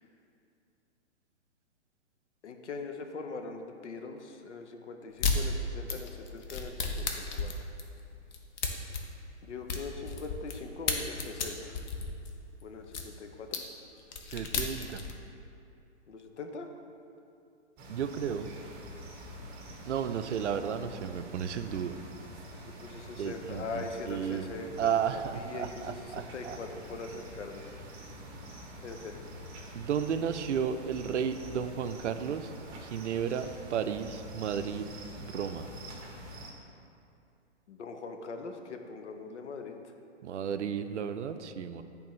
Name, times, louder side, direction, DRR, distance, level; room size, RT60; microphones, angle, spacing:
voice 1, 2.4-7.5 9.4-11.8 12.6-13.6 16.1-16.7 22.6-27.6 28.8-29.2 37.7-39.8, left 4 dB, 70° left, 5 dB, 0.7 m, -42 dB
sound 1, 5.2-5.4 5.9-10.6 10.9-13.1 13.5-13.6 14.0-15.1, left 4 dB, 40° left, 0.6 m, -33 dB
voice 2, 14.3-15.0 17.9-18.5 19.9-22.0 23.2-24.5 24.8-26.6 29.7-32.5 32.8-34.9 35.3-35.7 40.2-41.8, right 8 dB, 75° right, 9 dB, 0.5 m, -33 dB
sound 2, 17.8-36.5, equal, 25° right, 0.8 m, -46 dB
10.0 x 3.5 x 3.1 m, 2.5 s
figure-of-eight pair, 125°, 36 cm